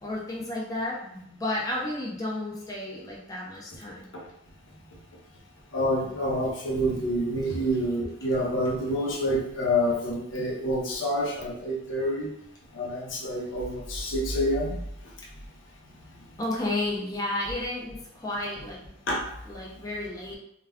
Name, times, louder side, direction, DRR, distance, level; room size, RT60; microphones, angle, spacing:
voice 1, 0.0-4.1 16.4-18.8 19.5-20.4, left 1 dB, 15° left, -4 dB, 0.4 m, -32 dB
voice 2, 5.7-12.3 12.7-14.8 19.1-19.2, equal, 65° left, -2 dB, 0.6 m, -27 dB
2.3 x 2.2 x 3.4 m, 0.76 s
head